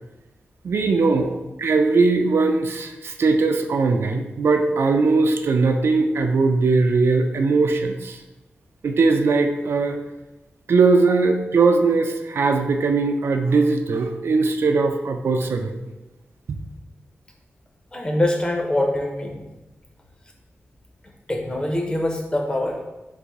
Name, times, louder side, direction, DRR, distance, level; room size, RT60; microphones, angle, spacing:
voice 1, 0.6-1.3 1.6-8.2 8.8-10.0 10.7-15.8 16.5-16.6, right 3 dB, 65° right, 5 dB, 0.4 m, -20 dB
voice 2, 17.9-19.4 21.3-22.9, left 1 dB, 20° left, 2 dB, 0.6 m, -24 dB
4.0 x 2.6 x 4.7 m, 1.1 s
wide cardioid pair, 145°, 4 cm